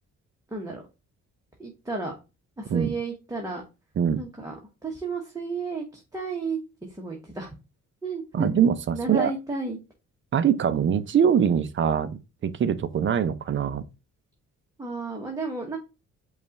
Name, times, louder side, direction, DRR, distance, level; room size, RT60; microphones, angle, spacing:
voice 1, 0.5-0.8 1.6-2.2 2.6-3.6 4.2-4.5 4.8-6.6 6.9-7.6 8.0-8.6 8.9-9.8 14.8-15.8, right 3 dB, 10° right, 1.0 m, -32 dB
voice 2, 8.3-9.3 10.3-13.8, right 8 dB, 40° right, 0.5 m, -23 dB
5.2 x 2.4 x 4.0 m
cardioid pair, 90°, 30 cm